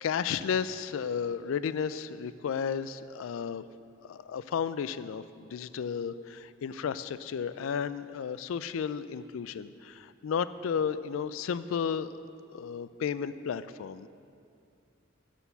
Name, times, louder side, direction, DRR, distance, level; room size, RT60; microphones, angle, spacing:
voice 1, 0.0-3.6 4.0-12.1 12.5-14.1, left 7 dB, 75° left, 14 dB, 0.3 m, -33 dB
11.0 x 4.5 x 6.9 m, 2.5 s
head